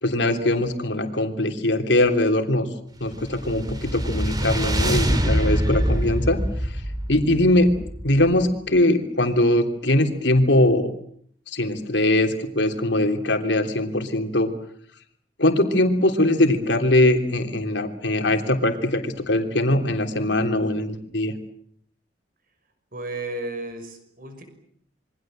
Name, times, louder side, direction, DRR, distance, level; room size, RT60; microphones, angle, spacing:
voice 1, 0.0-2.7 3.0-6.4 7.1-7.7 8.0-10.9 11.5-14.5 15.4-21.3, left 1 dB, 75° left, 6 dB, 3.3 m, -21 dB
sound 1, 3.1-8.5, equal, 20° right, 2.9 m, -25 dB
voice 2, 22.9-24.4, right 2 dB, 50° right, 7 dB, 6.2 m, -33 dB
27.5 x 23.5 x 7.7 m, 0.64 s
head